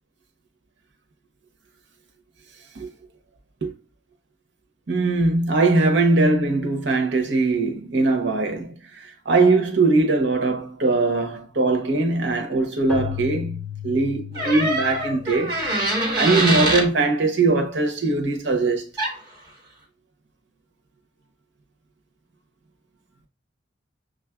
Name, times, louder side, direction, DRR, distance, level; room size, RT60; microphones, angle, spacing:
voice 1, 4.9-15.5 16.2-18.9, right 3 dB, 65° right, 0.7 m, -21 dB
Keyboard (musical), 12.9-16.4, left 8 dB, 5° left, 0.5 m, -35 dB
sound 1, 14.3-16.9 19.0-19.2, right 1 dB, 20° right, 1.2 m, -24 dB
6.2 x 2.4 x 2.3 m
head